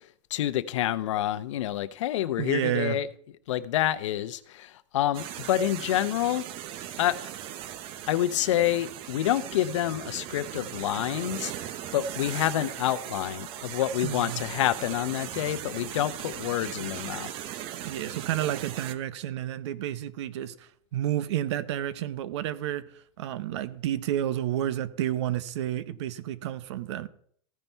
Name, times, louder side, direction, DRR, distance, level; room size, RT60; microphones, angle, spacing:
voice 1, 0.3-3.1 3.5-6.4 7.0-7.3 8.1-17.3, left 12 dB, 85° left, 0.7 m, -28 dB
voice 2, 2.4-3.0 14.0-14.4 17.8-22.8 23.2-27.1, right 12 dB, 70° right, 0.9 m, -30 dB
sound 1, 5.1-18.9, right 11 dB, 35° right, 0.7 m, -38 dB
15.0 x 5.5 x 4.5 m
supercardioid pair, 150°, 15 cm